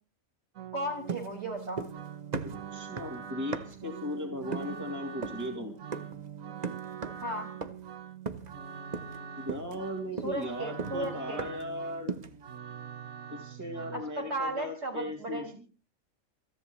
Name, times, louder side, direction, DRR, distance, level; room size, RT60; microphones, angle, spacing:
sound 1, 0.5-14.0, right 8 dB, 80° right, 1.4 m, -44 dB
voice 1, 0.7-1.8 7.2-7.5 10.2-11.4 13.9-15.5, right 1 dB, 55° right, 2 dB, 5.9 m, -35 dB
sound 2, 1.1-2.1 2.3-3.9 4.5-4.8 5.2-5.5 5.9-6.2 6.6-7.3 7.6-7.9 8.3-8.6 8.9-9.2 9.5-11.7 12.1-12.4, right 4 dB, 35° right, 1.0 m, -38 dB
voice 2, 2.7-5.8 9.4-12.2 13.3-15.6, left 1 dB, 15° right, 1 dB, 2.9 m, -37 dB
28.5 x 10.5 x 3.1 m, 0.34 s
omnidirectional pair, 1.4 m